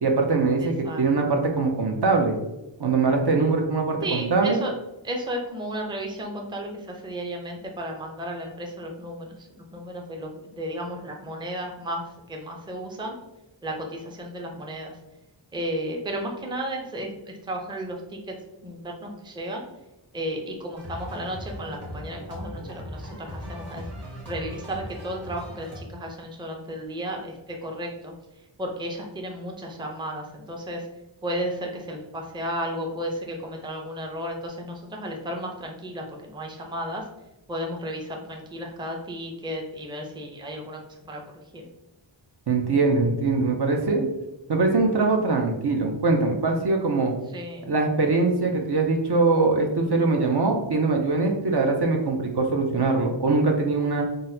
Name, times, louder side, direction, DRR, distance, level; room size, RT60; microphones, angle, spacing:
voice 1, 0.0-2.4 2.8-4.6 42.5-44.1 44.5-47.1 47.6-54.0, right 3 dB, 55° right, 2 dB, 0.6 m, -22 dB
voice 2, 0.6-1.0 4.0-4.7 5.0-13.2 13.6-14.9 15.5-18.3 18.6-19.7 20.1-23.9 24.2-28.1 28.6-30.9 31.2-37.1 37.5-40.8 41.1-41.2 41.5-41.7 47.3-47.7, equal, 10° right, 1 dB, 0.5 m, -33 dB
sound 1, 20.8-25.8, equal, 30° right, 1.1 m, -38 dB
3.9 x 2.1 x 2.6 m, 0.93 s
wide cardioid pair, 45°, 47 cm